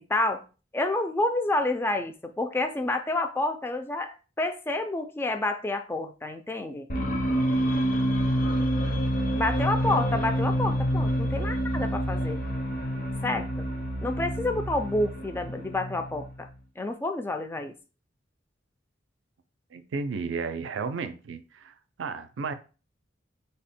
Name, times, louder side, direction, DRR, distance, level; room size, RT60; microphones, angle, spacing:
voice 1, 0.1-0.4 0.7-6.9 9.3-12.4 13.2-13.5 14.0-16.5 16.8-17.7, left 2 dB, 10° left, 0.3 m, -29 dB
sound 1, 6.9-16.5, equal, 45° left, 0.6 m, -27 dB
voice 2, 19.7-22.5, right 4 dB, 85° right, 0.4 m, -33 dB
3.3 x 2.1 x 4.2 m
head